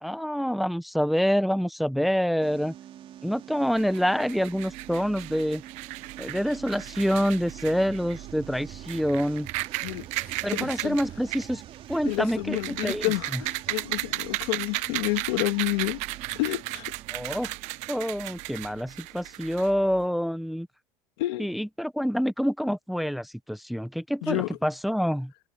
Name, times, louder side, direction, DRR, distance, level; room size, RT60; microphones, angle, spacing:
voice 1, 0.0-2.7 3.2-5.6 6.2-9.5 10.4-11.6 11.9-13.4 17.1-17.5 17.9-20.7 21.4-25.3, equal, ahead, 0.9 m, -27 dB
sound 1, 2.4-18.7, right 11 dB, 45° right, 3.6 m, -46 dB
sound 2, 3.8-20.0, right 20 dB, 60° right, 0.8 m, -36 dB
voice 2, 9.8-11.0 12.0-16.0 16.4-16.9 21.2-21.5 24.2-24.6, left 20 dB, 85° left, 2.5 m, -29 dB
supercardioid pair, 125°, 14 cm